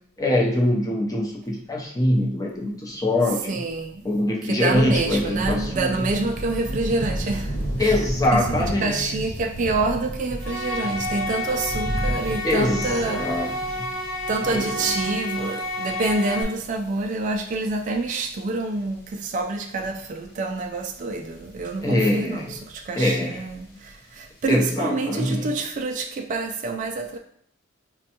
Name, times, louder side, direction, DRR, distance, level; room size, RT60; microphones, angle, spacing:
voice 1, 0.2-3.6 4.0-5.9 7.8-9.2 12.4-13.9 14.5-14.7 21.8-22.6 23.0-23.4 24.5-25.5, left 1 dB, 15° left, -1 dB, 0.6 m, -23 dB
voice 2, 3.5-4.0 4.4-8.0 8.3-13.6 14.3-27.2, right 3 dB, 40° right, 3 dB, 0.3 m, -27 dB
sound 1, 4.7-18.4 18.8-19.4 19.8-24.3, right 1 dB, 50° left, 0.9 m, -33 dB
sound 2, 10.4-16.4, left 1 dB, 80° left, 1.1 m, -30 dB
5.1 x 2.2 x 2.8 m, 0.67 s
head